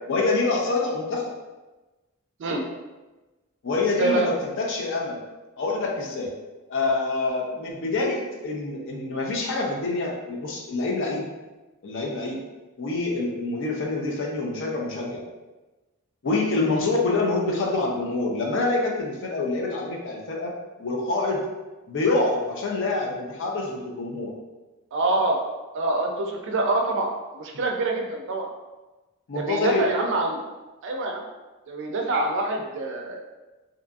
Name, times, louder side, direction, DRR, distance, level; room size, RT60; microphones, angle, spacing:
voice 1, 0.1-1.3 3.6-5.2 5.6-6.3 6.7-11.3 11.8-12.4 12.8-15.2 16.2-20.5 20.8-21.5 21.9-24.3 29.3-29.9, left 3 dB, 60° left, 0 dB, 0.5 m, -26 dB
voice 2, 4.0-4.3 24.9-25.4 25.7-28.5 29.3-30.4 30.8-31.2 31.7-33.2, right 2 dB, 60° right, 2 dB, 0.4 m, -25 dB
2.7 x 2.4 x 2.3 m, 1.1 s
head